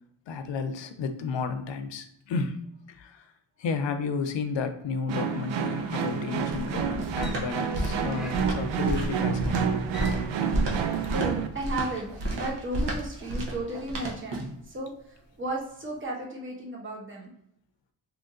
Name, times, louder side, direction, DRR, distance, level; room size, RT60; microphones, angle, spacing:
voice 1, 0.3-3.2 3.6-9.8 10.4-10.6, left 5 dB, 75° left, 9 dB, 0.5 m, -32 dB
sound 1, 5.1-11.5, right 6 dB, 85° right, 0.5 m, -29 dB
sound 2, 5.8-14.6, right 1 dB, 65° right, 0.9 m, -33 dB
sound 3, 6.7-12.3 12.7-12.9, equal, ahead, 0.5 m, -42 dB
voice 2, 11.1-17.3, right 1 dB, 25° right, -2 dB, 0.9 m, -34 dB
2.8 x 2.6 x 3.6 m, 0.77 s
wide cardioid pair, 135°, 45 cm